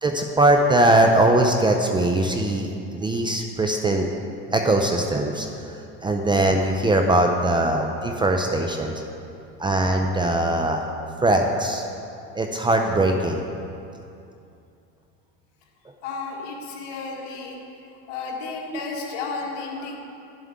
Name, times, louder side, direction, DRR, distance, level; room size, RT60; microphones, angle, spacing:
voice 1, 0.0-4.1 4.5-5.5 6.0-8.9 9.6-10.9 11.2-11.8 12.4-13.4, right 1 dB, 15° right, 3 dB, 0.5 m, -21 dB
voice 2, 16.0-17.6 17.9-20.0, left 4 dB, 65° left, -1 dB, 1.7 m, -33 dB
11.5 x 7.4 x 3.6 m, 2.6 s
supercardioid pair, 125°, 34 cm